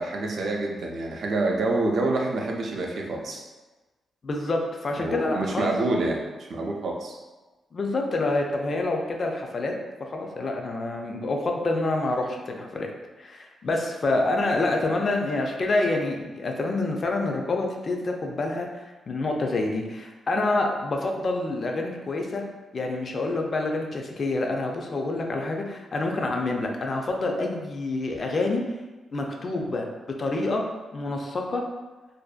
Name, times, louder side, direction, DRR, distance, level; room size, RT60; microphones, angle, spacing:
voice 1, 0.0-3.4 5.0-7.2, right 2 dB, 65° right, 0 dB, 0.4 m, -27 dB
voice 2, 4.2-5.7 7.7-9.7 10.0-12.9 13.2-22.5 22.7-28.7 29.1-29.9 30.2-30.6 30.9-31.7, left 2 dB, 45° left, 1 dB, 0.3 m, -27 dB
2.5 x 2.1 x 2.3 m, 1.2 s
cardioid pair, 110°, 0 cm